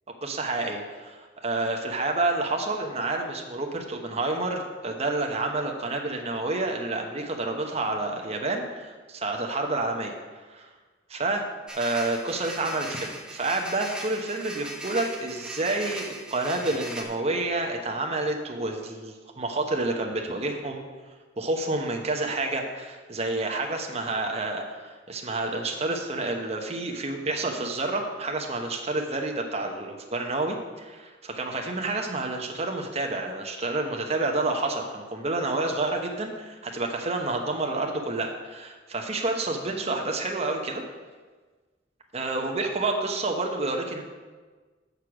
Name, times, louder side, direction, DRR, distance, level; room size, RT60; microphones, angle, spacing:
voice 1, 0.2-10.1 10.5-10.7 11.1-11.4 11.7-20.8 21.4-40.8 42.1-44.0, right 2 dB, 35° right, 2 dB, 0.9 m, -29 dB
sound 1, 11.7-17.0, right 1 dB, 5° right, 0.8 m, -39 dB
6.6 x 6.4 x 6.0 m, 1.4 s
head